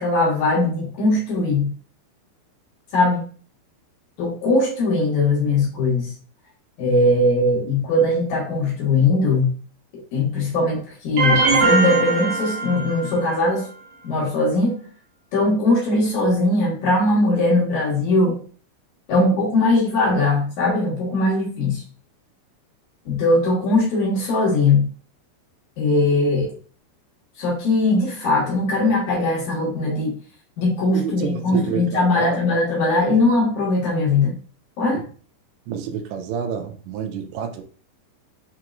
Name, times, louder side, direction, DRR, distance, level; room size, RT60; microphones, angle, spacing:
voice 1, 0.0-1.7 2.9-3.2 4.2-6.1 6.8-9.5 10.1-13.7 14.0-14.8 15.3-18.4 19.1-21.8 23.1-24.9 25.8-26.6 27.4-30.1 30.6-34.4 34.8-35.1, left 2 dB, 80° left, 1.7 m, -20 dB
sound 1, 11.2-13.3, right 3 dB, 65° right, 2.6 m, -21 dB
voice 2, 30.9-32.4 34.9-35.0 35.7-37.6, right 7 dB, 85° right, 2.8 m, -28 dB
6.6 x 3.0 x 2.4 m
omnidirectional pair, 5.2 m